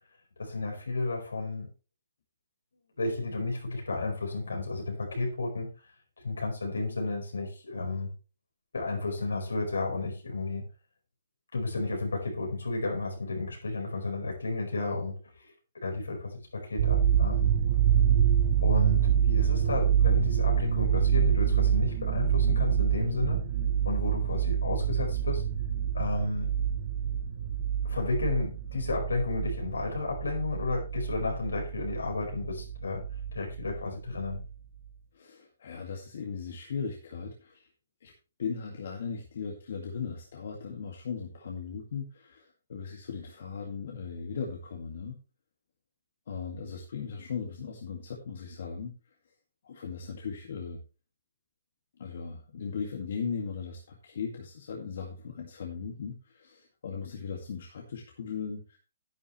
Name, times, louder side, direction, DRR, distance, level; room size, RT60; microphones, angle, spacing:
voice 1, 0.4-1.7 3.0-5.7 6.2-8.1 8.7-10.7 11.5-15.5 15.8-17.5 18.6-23.4 23.8-25.4 25.9-26.5 27.8-33.0 33.3-34.4, left 3 dB, 85° left, 1 dB, 4.8 m, -32 dB
sound 1, 16.8-33.8 34.1-34.4, right 9 dB, 60° right, 1.8 m, -27 dB
voice 2, 35.1-37.7 38.0-38.1 38.4-45.2 46.3-49.1 49.6-50.8 52.0-58.8, left 5 dB, 65° left, 1 dB, 2.1 m, -38 dB
11.0 x 9.8 x 3.2 m, 0.33 s
hypercardioid pair, 140°, 0 cm